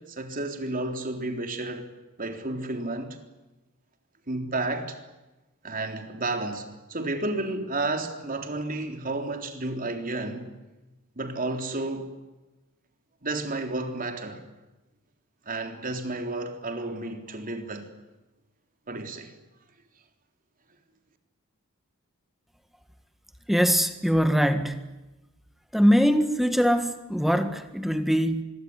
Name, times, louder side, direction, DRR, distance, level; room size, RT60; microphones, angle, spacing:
voice 1, 0.0-1.9 2.2-3.2 4.3-5.0 5.6-10.5 11.2-12.1 13.2-14.4 15.5-17.9 18.9-19.3, right 2 dB, 40° right, 3.7 m, -31 dB
voice 2, 23.5-24.8 25.7-28.4, equal, ahead, 1.6 m, -22 dB
25.5 x 22.5 x 9.7 m
head